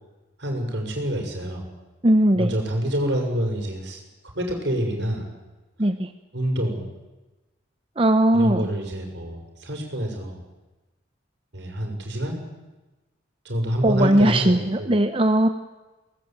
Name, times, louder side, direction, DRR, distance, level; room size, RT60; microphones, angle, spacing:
voice 1, 0.4-1.6 2.3-4.0 4.3-5.3 6.3-6.8 8.3-10.4 11.5-12.4 13.4-14.9, equal, 65° right, 2 dB, 6.6 m, -27 dB
voice 2, 2.0-2.6 5.8-6.1 8.0-8.7 13.8-15.5, right 1 dB, 30° right, 8 dB, 0.9 m, -19 dB
23.5 x 19.5 x 9.1 m, 1.1 s
head